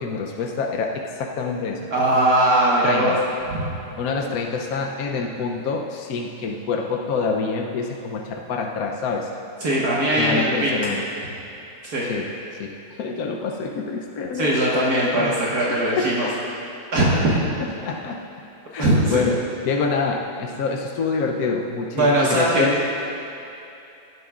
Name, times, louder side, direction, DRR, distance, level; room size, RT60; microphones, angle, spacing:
voice 1, 0.0-1.9 2.8-3.2 4.0-9.3 10.1-11.0 12.0-12.3 12.6-14.5 15.1-15.4 15.7-16.4 17.3-18.2 18.7-22.8, left 4 dB, 70° left, 1 dB, 1.1 m, -26 dB
voice 2, 1.9-3.1 3.5-3.7 9.6-10.7 11.8-12.0 14.4-16.3 16.9-17.4 18.8-19.2 21.9-22.7, right 1 dB, 65° right, -6 dB, 2.0 m, -20 dB
18.0 x 11.0 x 2.4 m, 2.8 s
omnidirectional pair, 1.7 m